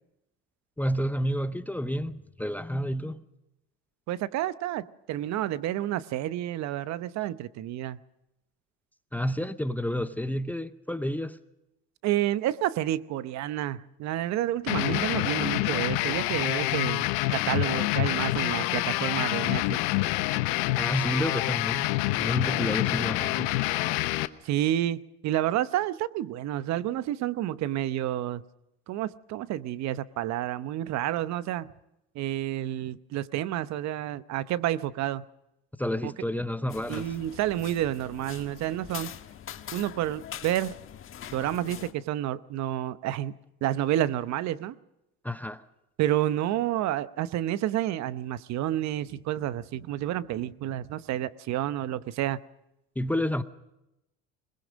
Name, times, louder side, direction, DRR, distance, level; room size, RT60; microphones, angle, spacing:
voice 1, 0.8-3.2 9.1-11.4 20.8-23.6 35.8-37.1 45.2-45.6 53.0-53.4, equal, 5° left, 0.7 m, -30 dB
voice 2, 4.1-8.0 12.0-19.8 24.4-28.4 28.9-31.7 32.1-35.3 36.0-36.1 36.9-39.1 39.7-40.7 41.3-44.8 46.0-52.4, right 13 dB, 55° right, 0.9 m, -30 dB
sound 1, 14.7-24.3, left 19 dB, 85° left, 1.0 m, -27 dB
sound 2, 36.7-41.9, left 10 dB, 40° left, 1.4 m, -43 dB
21.5 x 20.5 x 6.3 m
cardioid pair, 125°, 34 cm